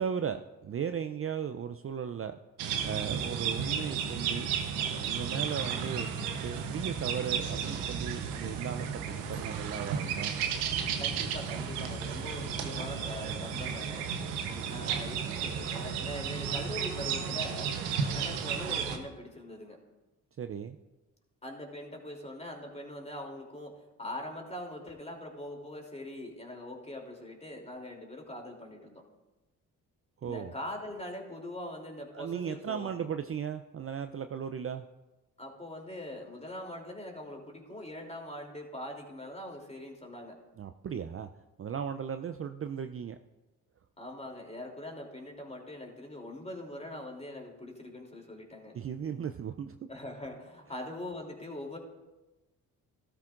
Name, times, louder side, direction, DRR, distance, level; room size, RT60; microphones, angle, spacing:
voice 1, 0.0-2.4 2.8-4.5 5.1-6.1 6.4-10.3 14.5-14.9 20.4-20.8 30.2-30.5 32.1-34.9 40.6-41.3 41.6-43.2 48.7-49.8, right 7 dB, 35° right, 9 dB, 0.5 m, -36 dB
sound 1, 2.6-19.0, right 7 dB, 90° right, 1.0 m, -33 dB
voice 2, 11.0-14.1 14.7-17.7 18.1-19.8 21.4-29.0 30.2-32.9 35.4-40.4 44.0-48.8 49.9-51.8, left 1 dB, 15° left, 1 dB, 3.1 m, -42 dB
13.5 x 12.5 x 2.5 m, 1.1 s
hypercardioid pair, 50°, 40 cm